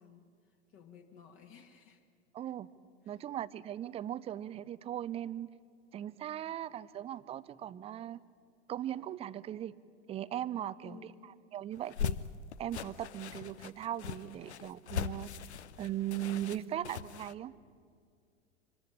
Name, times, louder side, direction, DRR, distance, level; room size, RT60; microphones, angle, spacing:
voice 1, 0.0-2.0 3.0-3.2 10.8-11.4, left 7 dB, 35° left, 4 dB, 2.0 m, -56 dB
voice 2, 2.3-2.7 3.1-5.5 5.9-8.2 8.7-9.7 10.1-11.0 11.5-12.2 12.6-15.3 15.8-17.5, right 12 dB, 15° right, 18 dB, 0.5 m, -38 dB
sound 1, 11.8-17.3, left 8 dB, 70° left, 0.8 m, -40 dB
24.5 x 14.0 x 9.9 m, 2.2 s
figure-of-eight pair, 90°, 35 cm